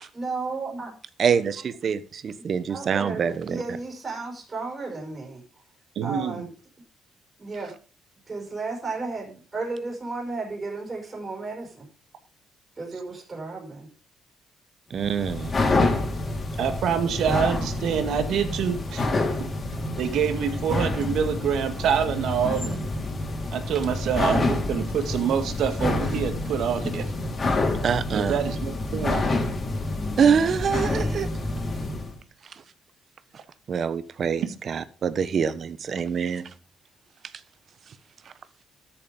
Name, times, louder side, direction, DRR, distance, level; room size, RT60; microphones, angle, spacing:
voice 1, 0.1-0.9 2.7-5.4 6.0-6.5 7.4-7.7 8.3-11.9 12.8-13.9 16.1-16.3, right 3 dB, 30° right, -1 dB, 5.8 m, -33 dB
voice 2, 1.2-3.6 14.9-15.6 27.8-28.4 30.2-31.3 33.7-36.5, right 7 dB, 55° right, 15 dB, 1.1 m, -25 dB
voice 3, 6.0-6.5 16.6-19.1 20.0-22.8 23.5-27.0 28.1-29.3, right 7 dB, 75° right, 8 dB, 2.1 m, -26 dB
sound 1, 15.0-32.1, left 2 dB, 35° left, 3.4 m, -28 dB
13.0 x 7.3 x 5.3 m, 0.39 s
cardioid pair, 90°, 0 cm